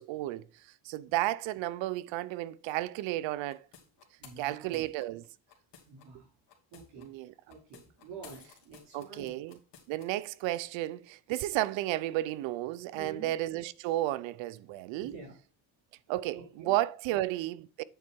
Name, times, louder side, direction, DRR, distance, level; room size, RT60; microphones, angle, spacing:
voice 1, 0.0-3.6 4.4-5.2 7.0-7.3 8.9-9.6 9.9-15.1 16.1-17.8, right 15 dB, 85° right, 0.6 m, -33 dB
sound 1, 3.5-6.1 6.5-7.1 7.5-10.1, left 7 dB, 70° left, 2.5 m, -55 dB
voice 2, 4.2-4.8 5.9-6.3 6.7-7.1 7.5-9.3 12.9-13.3 14.9-15.3 16.3-16.7 17.1-17.2, right 5 dB, 70° right, 4.4 m, -48 dB
9.1 x 4.7 x 4.4 m
cardioid pair, 150°, 44 cm